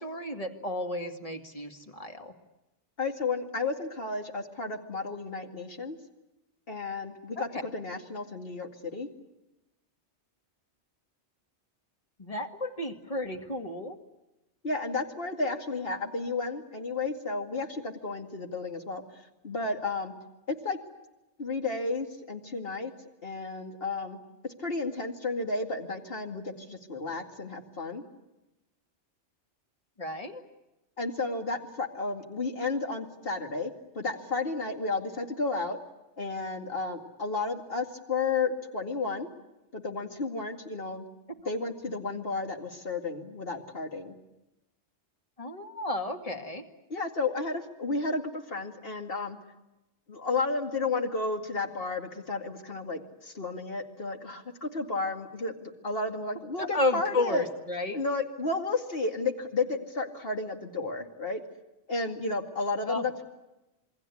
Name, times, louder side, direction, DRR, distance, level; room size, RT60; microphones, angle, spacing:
voice 1, 0.0-2.3 7.4-7.6 12.2-14.0 30.0-30.4 45.4-46.7 56.6-58.0 62.8-63.0, left 2 dB, 30° left, 5 dB, 2.0 m, -32 dB
voice 2, 3.0-6.0 6.7-9.1 14.6-19.0 19.4-20.1 20.5-20.8 21.4-22.9 23.2-24.2 24.6-28.0 31.0-35.8 36.2-39.3 39.7-41.0 41.5-44.1 46.9-49.4 50.1-57.5 57.9-61.4 61.9-63.2, left 3 dB, 55° left, 4 dB, 2.5 m, -32 dB
27.5 x 22.5 x 8.4 m, 0.98 s
omnidirectional pair, 1.2 m